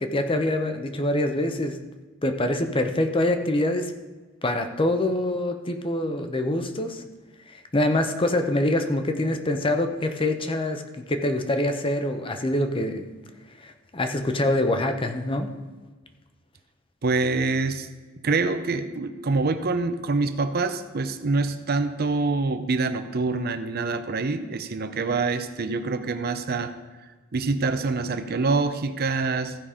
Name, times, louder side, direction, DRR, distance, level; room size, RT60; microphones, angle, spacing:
voice 1, 0.0-1.8 2.2-3.9 4.4-7.0 7.5-13.1 13.6-15.5, left 1 dB, 25° left, 6 dB, 0.7 m, -25 dB
voice 2, 17.0-17.9 18.2-26.7 27.3-29.6, right 3 dB, 45° right, 10 dB, 0.6 m, -25 dB
15.0 x 5.3 x 5.0 m, 1.3 s
head